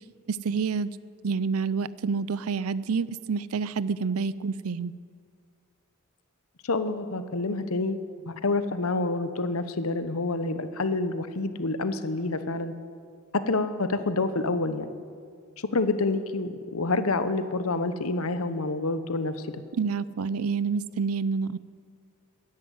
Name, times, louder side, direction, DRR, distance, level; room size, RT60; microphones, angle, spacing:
voice 1, 0.3-0.9 1.2-4.9 19.8-21.6, right 5 dB, 80° right, 17 dB, 0.5 m, -28 dB
voice 2, 6.6-8.0 8.2-12.7 13.3-14.9 15.6-19.5, left 3 dB, 75° left, 11 dB, 1.0 m, -28 dB
14.5 x 10.5 x 9.4 m, 2.1 s
head